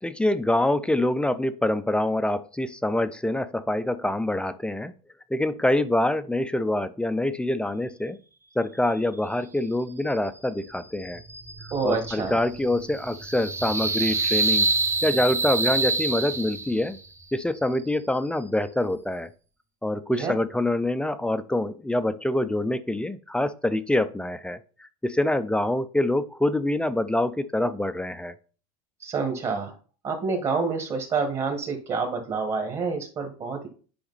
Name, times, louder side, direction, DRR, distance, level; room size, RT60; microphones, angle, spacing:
voice 1, 0.0-4.9 5.3-8.2 8.6-11.2 11.8-14.7 15.0-17.0 17.3-19.3 19.8-28.3, left 1 dB, 5° left, 11 dB, 0.5 m, -25 dB
sound 1, 11.0-17.0, right 3 dB, 15° right, 0.8 m, -27 dB
voice 2, 11.7-12.4 20.1-20.4 29.0-29.7 30.0-33.7, right 4 dB, 35° right, 2 dB, 1.7 m, -28 dB
8.9 x 5.0 x 4.1 m, 0.39 s
supercardioid pair, 120°, 19 cm